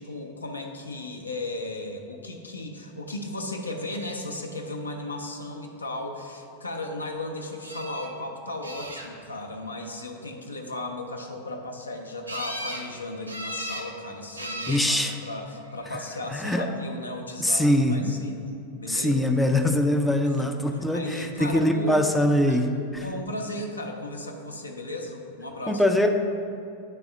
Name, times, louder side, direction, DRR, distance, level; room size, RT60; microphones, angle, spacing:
voice 1, 0.0-17.6 17.9-18.4 18.8-19.4 20.4-20.5 20.9-22.0 23.0-25.8, left 2 dB, 80° left, 2 dB, 0.6 m, -35 dB
sound 1, 7.6-8.1 8.6-9.4 12.3-12.9 13.3-13.9 14.4-14.9 15.8-16.3 22.5-22.6 22.9-23.0, right 1 dB, 85° right, 0.6 m, -36 dB
voice 2, 14.7-15.1 16.3-16.7 17.4-18.1 18.9-22.7 22.9-23.1 25.7-26.1, left 1 dB, 5° left, 3 dB, 0.4 m, -23 dB
9.9 x 3.4 x 3.6 m, 2.6 s
figure-of-eight pair, 90°, 0 cm